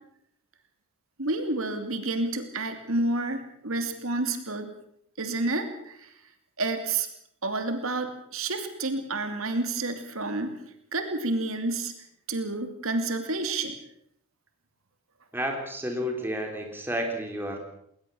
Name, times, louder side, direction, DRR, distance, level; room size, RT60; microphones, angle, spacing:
voice 1, 1.2-4.7 5.2-6.1 6.6-7.1 7.4-10.5 10.9-11.9 12.3-13.7, right 2 dB, 75° right, 7 dB, 2.8 m, -29 dB
voice 2, 15.3-17.6, equal, 10° right, 2 dB, 3.7 m, -31 dB
21.0 x 19.5 x 7.1 m, 0.71 s
head